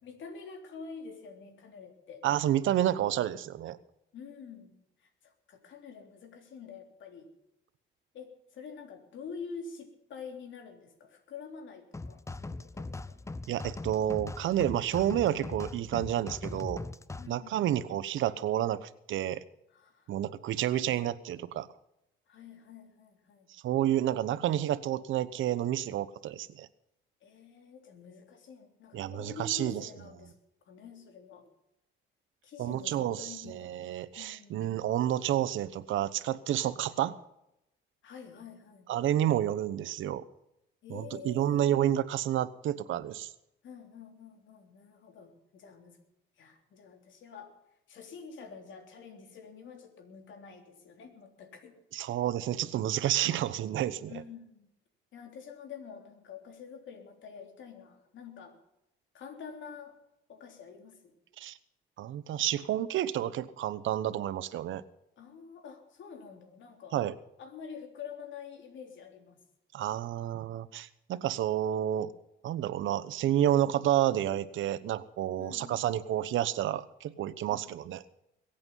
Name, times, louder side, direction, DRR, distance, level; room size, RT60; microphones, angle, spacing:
voice 1, 0.0-2.3 4.1-4.7 5.0-7.3 8.1-13.2 17.2-17.8 19.7-20.1 20.6-20.8 22.3-23.5 27.2-30.3 30.7-31.5 32.4-33.7 34.2-34.7 38.0-38.9 40.8-41.7 43.6-46.0 46.4-47.5 47.9-51.8 52.0-52.2 54.1-54.7 55.1-58.6 59.1-60.0 60.3-61.2 65.2-67.0 67.4-69.4 75.4-75.8 77.5-77.9, left 6 dB, 70° left, 5 dB, 3.4 m, -47 dB
voice 2, 2.2-3.8 13.5-16.8 17.3-19.4 20.1-21.7 23.5-26.7 28.9-29.9 32.6-37.1 38.9-40.2 40.9-43.3 51.9-54.1 61.4-61.6 62.0-64.8 66.9-67.1 69.7-72.1 72.4-78.0, right 12 dB, 80° right, 15 dB, 1.0 m, -30 dB
sound 1, 11.9-17.3, left 3 dB, 15° left, 0.7 m, -40 dB
22.0 x 8.8 x 5.6 m, 0.84 s
cardioid pair, 90°, 20 cm